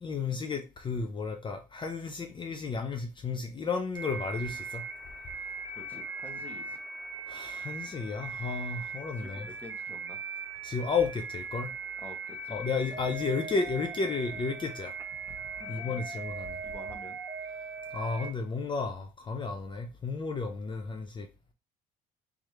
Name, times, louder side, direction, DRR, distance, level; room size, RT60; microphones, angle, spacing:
voice 1, 0.0-4.8 7.3-9.5 10.6-11.7 12.5-14.9 15.3-15.4 15.7-16.6 17.9-21.3, left 4 dB, 30° left, 0.5 m, -33 dB
sound 1, 3.9-18.3, right 4 dB, 15° right, 0.6 m, -39 dB
voice 2, 5.8-6.8 9.2-10.2 12.0-12.6 15.6-15.9 16.6-17.2, left 1 dB, 10° left, 1.1 m, -48 dB
3.5 x 3.2 x 3.2 m
cardioid pair, 110°, 17 cm